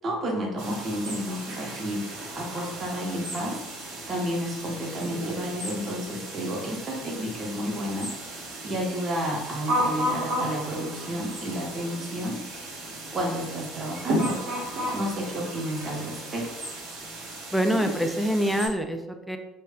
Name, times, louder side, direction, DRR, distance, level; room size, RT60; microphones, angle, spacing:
voice 1, 0.0-2.1 2.3-3.6 4.1-8.4 8.6-12.4 13.1-16.7, equal, 35° right, -1 dB, 0.9 m, -31 dB
sound 1, 0.6-18.7, right 1 dB, 60° right, 1.0 m, -34 dB
voice 2, 17.5-19.4, equal, ahead, 5 dB, 0.4 m, -25 dB
3.1 x 2.2 x 3.5 m, 0.95 s
hypercardioid pair, 65°, 0 cm